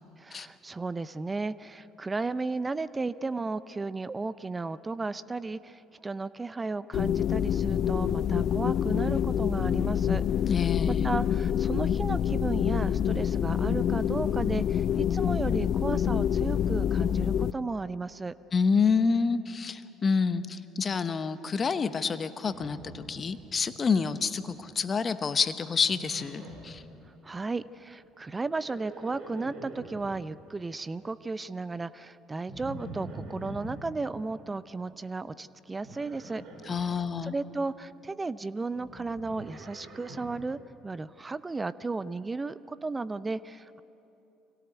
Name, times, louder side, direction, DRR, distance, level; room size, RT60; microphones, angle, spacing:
voice 1, 0.2-10.2 10.9-18.3 27.2-36.4 37.2-43.8, right 3 dB, 25° right, 16 dB, 0.6 m, -34 dB
sound 1, 6.9-17.5, left 9 dB, 55° left, 0.4 m, -26 dB
voice 2, 10.5-11.0 18.5-26.8 36.7-37.3, left 5 dB, 35° left, 12 dB, 1.0 m, -28 dB
Livestock farm animals working animals, 22.5-23.8 24.0-24.6 25.9-26.8 28.4-30.2 32.5-33.9 35.8-37.0 38.7-40.5, right 2 dB, 60° right, 3.3 m, -45 dB
24.5 x 17.5 x 8.1 m, 2.9 s
hypercardioid pair, 60°, 0 cm